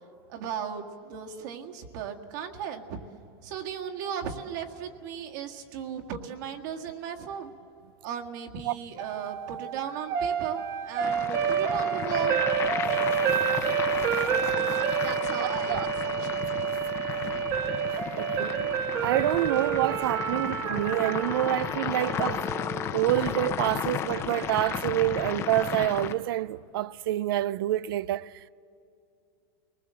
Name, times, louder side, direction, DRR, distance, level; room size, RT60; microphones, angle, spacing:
voice 1, 0.3-3.0 3.4-7.5 8.0-12.4 13.5-14.1 15.0-16.6, right 8 dB, 50° right, 1.8 m, -36 dB
sound 1, 9.0-23.1, right 8 dB, 25° right, 0.8 m, -29 dB
sound 2, 11.0-26.1, left 9 dB, 20° left, 0.8 m, -34 dB
voice 2, 15.4-15.9 16.8-16.9 17.2-17.4 18.2-22.4 22.9-28.5, right 14 dB, 70° right, 0.5 m, -27 dB
29.5 x 20.0 x 7.6 m
supercardioid pair, 175°, 12 cm